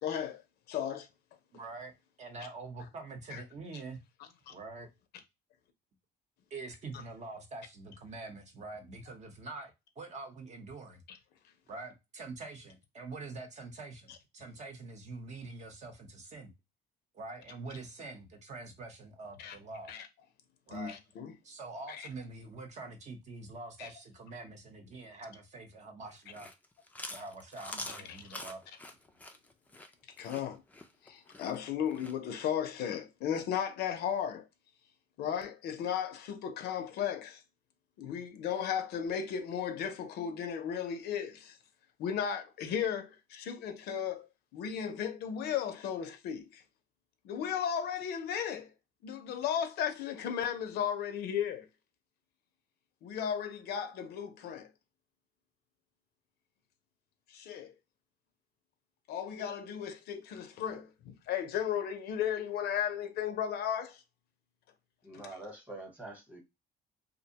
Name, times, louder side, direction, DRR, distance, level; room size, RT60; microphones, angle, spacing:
voice 1, 0.0-0.4 0.7-1.1 3.3-3.4 4.5-4.6 11.1-11.2 19.4-19.6 19.9-20.1 20.7-21.3 21.9-22.1 23.8-23.9 28.1-28.2 30.2-30.6 31.0-34.5 35.2-37.4 38.0-41.6 42.0-46.6 47.2-48.7 49.0-51.7 53.0-54.7 57.3-57.7 59.1-64.0, left 8 dB, 75° left, 0.5 m, -35 dB
voice 2, 1.5-4.0 4.5-4.9 6.5-11.0 11.7-16.5 17.1-19.9 20.7-21.0 21.4-26.5 27.1-28.6, right 3 dB, 45° right, 0.8 m, -45 dB
Chewing mastication, 26.2-32.2, left 2 dB, 10° left, 0.4 m, -45 dB
voice 3, 65.0-66.4, right 2 dB, 10° right, 1.0 m, -45 dB
2.5 x 2.1 x 2.7 m
cardioid pair, 110°, 17 cm